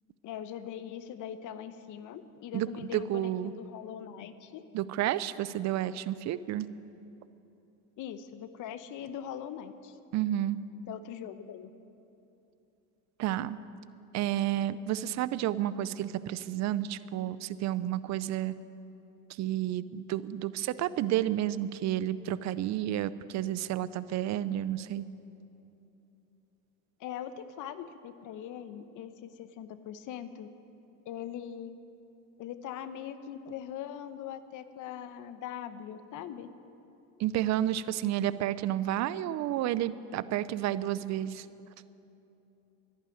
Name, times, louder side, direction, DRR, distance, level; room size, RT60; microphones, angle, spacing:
voice 1, 0.2-4.6 8.0-10.0 10.9-11.7 27.0-30.5 31.0-31.7 32.4-36.5, left 9 dB, 50° left, 11 dB, 1.0 m, -41 dB
voice 2, 2.5-3.5 4.7-6.7 10.1-10.6 13.2-13.6 14.1-18.5 19.4-25.1 37.2-41.4, right 12 dB, 45° right, 16 dB, 0.6 m, -31 dB
12.0 x 11.5 x 9.2 m, 2.9 s
supercardioid pair, 100°, 39 cm